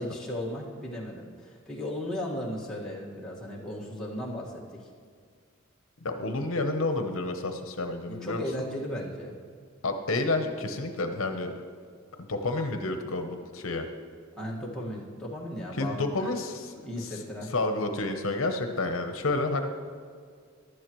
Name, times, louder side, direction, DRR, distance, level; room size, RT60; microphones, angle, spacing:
voice 1, 0.0-4.9 8.1-9.3 14.4-16.3 16.8-17.5, left 1 dB, 5° left, -5 dB, 1.7 m, -36 dB
voice 2, 6.0-8.4 9.8-11.5 12.2-13.9 15.7-16.7 17.5-19.7, left 2 dB, 70° left, 6 dB, 0.8 m, -30 dB
15.5 x 11.5 x 3.1 m, 2.1 s
head